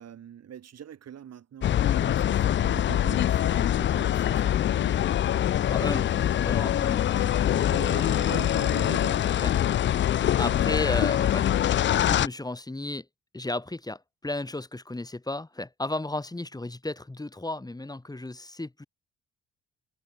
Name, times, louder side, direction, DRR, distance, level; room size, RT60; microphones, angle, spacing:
voice 1, 0.0-5.0 7.5-9.8, right 9 dB, 55° right, 2.1 m, -43 dB
sound 1, 1.6-12.3, left 11 dB, 40° left, 0.4 m, -24 dB
voice 2, 5.7-6.1 6.4-7.7 9.4-9.5 10.4-11.5 12.0-13.1 13.3-18.9, left 2 dB, 15° left, 2.5 m, -34 dB
cardioid pair, 90°, 30 cm